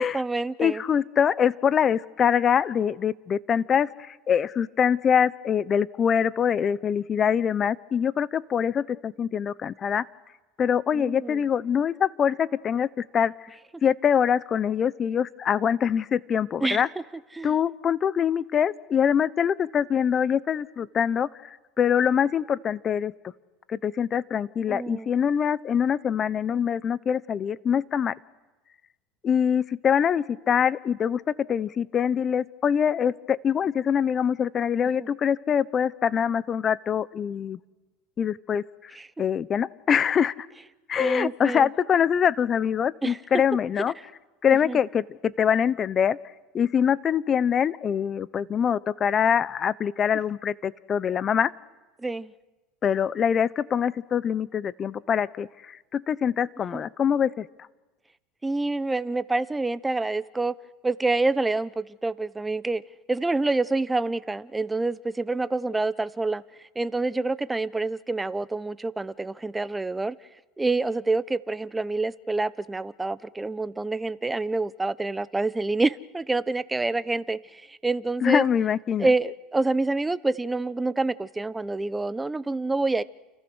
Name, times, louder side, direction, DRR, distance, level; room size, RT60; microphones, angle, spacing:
voice 1, 0.0-0.8 10.9-11.4 16.6-16.8 17.3-17.5 24.7-25.1 35.0-35.1 39.0-39.1 41.0-41.7 43.0-43.2 44.6-44.8 52.0-52.3 56.7-56.8 58.4-60.5 60.8-62.8 63.1-66.4 66.7-70.1 70.6-78.4 79.0-83.0, right 3 dB, 10° right, 15 dB, 1.0 m, -27 dB
voice 2, 0.6-10.1 10.6-13.3 13.8-16.9 17.4-23.1 23.7-28.1 29.2-37.6 38.2-38.9 39.2-40.3 40.9-43.9 44.4-46.2 46.5-51.5 52.8-57.5 78.2-79.1, left 8 dB, 35° left, 17 dB, 1.0 m, -24 dB
30.0 x 29.5 x 6.4 m, 1.1 s
supercardioid pair, 100°, 0 cm